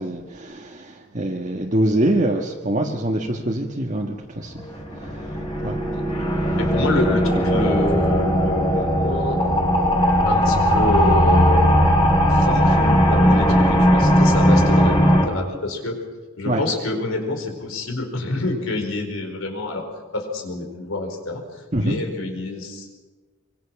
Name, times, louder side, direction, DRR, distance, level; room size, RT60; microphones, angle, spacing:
voice 1, 0.0-4.6 5.0-5.2 5.6-5.8 6.4-6.6 16.5-16.6 21.7-22.0, right 1 dB, 35° right, -1 dB, 1.4 m, -24 dB
sound 1, 4.6-15.2, equal, 25° left, 3.0 m, -18 dB
voice 2, 6.6-9.4 10.3-11.6 12.3-16.0 16.4-19.9 20.1-22.9, left 2 dB, 90° left, 3 dB, 4.8 m, -27 dB
25.0 x 23.5 x 5.9 m, 1.3 s
head